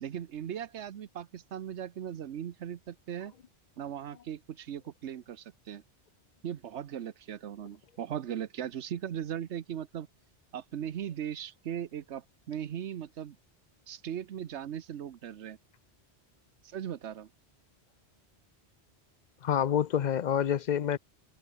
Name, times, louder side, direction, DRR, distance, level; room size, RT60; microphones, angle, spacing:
voice 1, 0.0-3.3 3.8-5.8 6.4-10.1 10.5-13.4 13.9-15.6 16.6-17.3, right 9 dB, 80° right, 1.1 m, -38 dB
voice 2, 19.4-21.0, left 9 dB, 50° left, 0.6 m, -27 dB
omnidirectional pair, 1.1 m